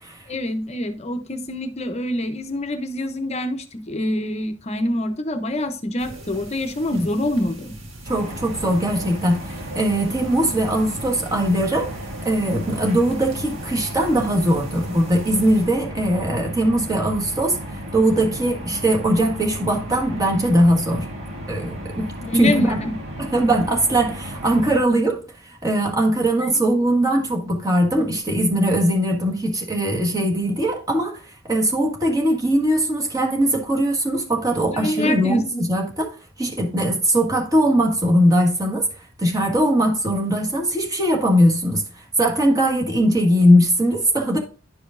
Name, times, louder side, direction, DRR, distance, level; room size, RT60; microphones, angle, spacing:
voice 1, 0.3-7.7 22.2-23.0 26.4-26.9 34.6-35.7, left 1 dB, 35° left, 0.7 m, -26 dB
sound 1, 6.0-15.7, right 1 dB, 80° right, 1.8 m, -40 dB
voice 2, 8.0-12.0 12.2-21.0 21.5-22.8 23.2-25.2 25.6-31.2 31.5-36.1 36.4-38.9 39.2-41.8 42.2-44.4, right 1 dB, 20° right, 1.6 m, -20 dB
sound 2, 8.1-24.8, equal, 65° right, 2.0 m, -34 dB
11.0 x 5.0 x 2.5 m
head